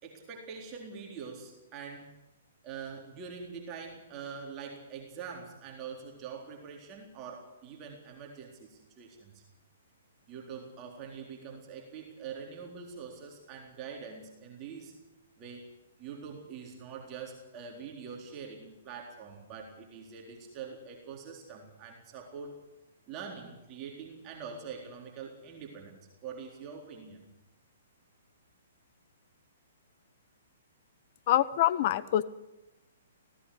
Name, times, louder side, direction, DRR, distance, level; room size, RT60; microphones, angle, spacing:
voice 1, 0.0-2.1 2.6-9.4 10.3-15.0 15.4-15.7 16.0-22.5 23.1-27.2, right 6 dB, 30° right, 0 dB, 3.9 m, -44 dB
voice 2, 31.3-32.2, left 13 dB, 45° left, 15 dB, 1.0 m, -25 dB
18.0 x 17.0 x 10.0 m, 1.0 s
hypercardioid pair, 130°, 0 cm